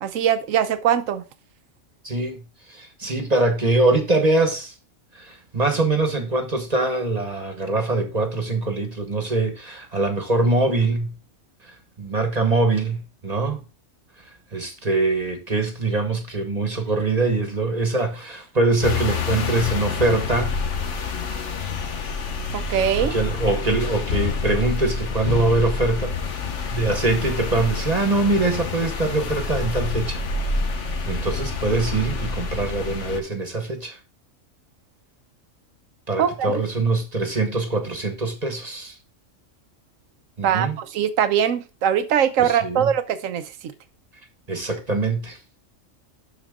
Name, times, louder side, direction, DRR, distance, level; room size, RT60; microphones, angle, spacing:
voice 1, 0.0-1.2 22.5-23.1 36.2-36.6 40.4-43.4, right 9 dB, 80° right, 1.1 m, -21 dB
voice 2, 2.0-2.4 2.7-4.7 5.1-11.1 12.0-13.6 14.5-20.6 22.9-26.1 26.7-30.2 31.0-34.0 36.1-38.9 40.4-40.8 42.4-42.9 44.5-45.4, right 2 dB, 30° right, 1.3 m, -23 dB
sound 1, 18.8-33.2, left 4 dB, 65° left, 1.4 m, -27 dB
12.0 x 4.5 x 3.7 m
omnidirectional pair, 1.3 m